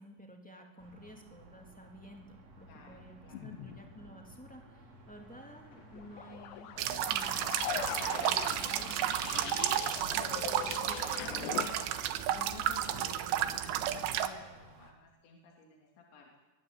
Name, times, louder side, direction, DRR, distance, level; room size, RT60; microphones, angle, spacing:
voice 1, 0.0-6.7 7.1-9.0 10.1-11.5, equal, 5° left, 2 dB, 1.3 m, -53 dB
sound 1, 0.8-14.9, right 2 dB, 35° right, 3.6 m, -56 dB
voice 2, 2.7-3.5 10.3-16.4, left 4 dB, 60° left, 0 dB, 4.7 m, -53 dB
sound 2, 3.3-4.1 5.7-11.7, left 12 dB, 75° left, 2.7 m, -41 dB
sound 3, 6.8-14.3, right 11 dB, 75° right, 3.5 m, -32 dB
24.0 x 22.5 x 8.4 m, 1.1 s
omnidirectional pair, 6.0 m